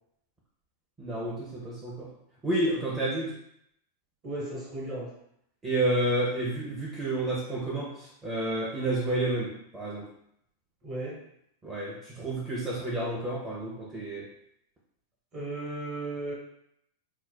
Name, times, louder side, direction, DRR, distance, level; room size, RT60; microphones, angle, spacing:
voice 1, 1.0-2.1 2.4-3.3 5.6-10.1 11.6-14.3, right 1 dB, 15° right, -7 dB, 0.7 m, -30 dB
voice 2, 4.2-5.1 10.8-11.2 15.3-16.3, right 2 dB, 35° right, -3 dB, 1.2 m, -35 dB
4.3 x 2.1 x 2.2 m, 0.74 s
figure-of-eight pair, 90°, 0 cm